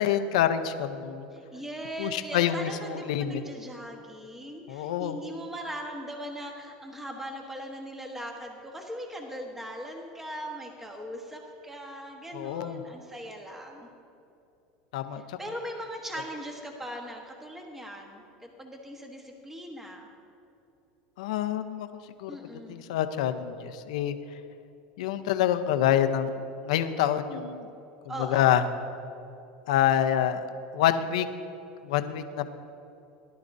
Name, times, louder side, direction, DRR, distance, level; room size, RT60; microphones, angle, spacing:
voice 1, 0.0-1.3 2.0-3.4 4.7-5.2 12.3-12.8 14.9-15.4 21.2-21.9 22.2-22.3 22.7-24.2 25.0-26.3 26.7-27.7 28.2-28.7 29.7-30.4 30.7-31.3 31.8-32.5, left 10 dB, 85° left, 9 dB, 0.7 m, -26 dB
voice 2, 1.3-13.9 15.1-20.1 22.3-22.8 28.1-28.6, equal, 10° right, 1 dB, 1.2 m, -39 dB
18.0 x 11.5 x 2.7 m, 2.8 s
supercardioid pair, 130°, 3 cm